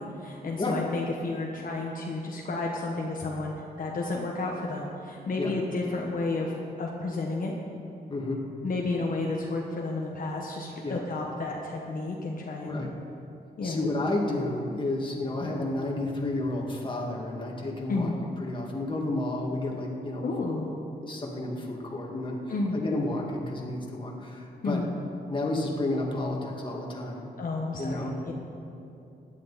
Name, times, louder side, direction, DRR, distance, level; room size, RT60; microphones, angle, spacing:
voice 1, 0.0-7.5 8.6-12.8 13.6-13.8 17.9-18.1 20.2-20.8 22.5-22.8 24.6-24.9 27.4-28.3, left 3 dB, 55° left, -1 dB, 1.3 m, -31 dB
voice 2, 8.1-8.4 10.8-11.0 12.6-12.9 13.6-20.2 20.5-20.6 21.0-22.4 22.7-24.8 25.3-27.2 27.8-28.1, left 2 dB, 30° left, -1 dB, 2.0 m, -31 dB
17.0 x 10.5 x 4.2 m, 2.7 s
wide cardioid pair, 110°, 17 cm